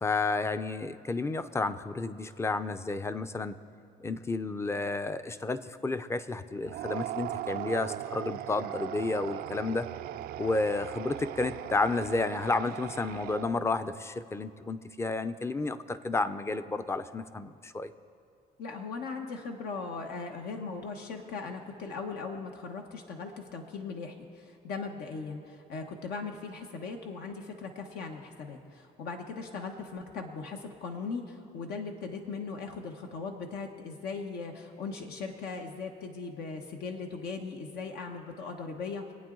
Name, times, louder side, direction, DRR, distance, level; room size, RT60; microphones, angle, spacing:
voice 1, 0.0-3.6 4.0-9.9 10.4-17.9, left 3 dB, 15° left, 12 dB, 0.5 m, -31 dB
sound 1, 6.6-13.8, right 13 dB, 65° right, 0.4 m, -39 dB
voice 2, 18.6-39.0, left 4 dB, 75° left, 3 dB, 1.2 m, -39 dB
25.0 x 8.8 x 3.9 m, 2.4 s
cardioid pair, 110°, 17 cm